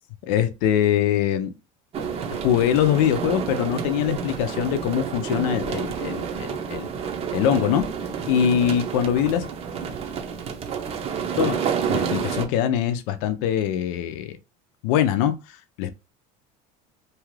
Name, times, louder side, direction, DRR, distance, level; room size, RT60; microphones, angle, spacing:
voice 1, 0.3-1.5 2.3-6.9 7.3-7.9 8.3-9.5 11.4-11.6 11.9-14.4 14.8-15.9, left 10 dB, 75° left, 0.5 m, -23 dB
sound 1, 1.9-12.5, right 7 dB, 35° right, 0.6 m, -29 dB
2.7 x 2.4 x 3.1 m
supercardioid pair, 130°, 18 cm